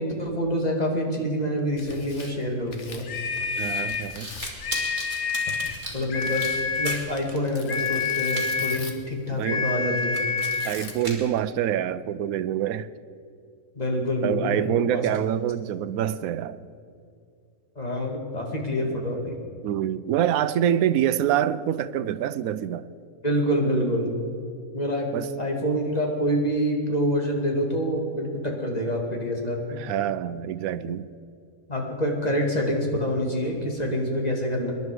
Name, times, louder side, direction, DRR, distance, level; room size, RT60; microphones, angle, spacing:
voice 1, 0.0-3.1 5.9-10.2 13.8-15.0 17.8-19.4 23.2-24.1 24.7-25.1 25.4-29.8 31.7-34.7, equal, 25° left, 2.3 m, -26 dB
Tearing, 1.6-3.6 3.9-4.7 5.6-9.1 10.4-11.2, left 4 dB, 50° left, 1.5 m, -42 dB
sound 1, 2.1-7.4 7.6-8.5 8.8-8.9 9.4-9.5 10.0-10.6 10.9-11.4, right 1 dB, 30° right, 2.7 m, -37 dB
sound 2, 3.0-4.1 4.6-5.8 6.1-7.1 7.7-8.9 9.4-10.8, left 5 dB, 75° left, 1.5 m, -28 dB
voice 2, 3.6-4.3 9.3-9.7 10.6-12.9 14.2-16.6 19.6-22.9 25.1-25.3 29.8-31.1, right 10 dB, 75° right, 1.0 m, -26 dB
22.5 x 11.0 x 4.9 m
omnidirectional pair, 1.6 m